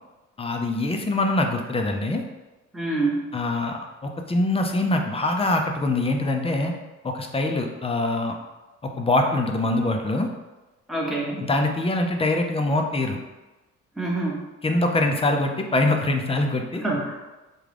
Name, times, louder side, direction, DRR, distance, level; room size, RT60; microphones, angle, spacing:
voice 1, 0.4-2.2 3.3-6.7 7.0-8.4 8.8-10.3 11.4-13.2 14.6-16.8, left 2 dB, 20° left, 4 dB, 0.4 m, -24 dB
voice 2, 2.7-3.3 10.9-11.4 14.0-14.4 16.8-17.2, right 2 dB, ahead, -3 dB, 0.8 m, -26 dB
3.7 x 2.3 x 3.3 m, 1.1 s
cardioid pair, 90°, 30 cm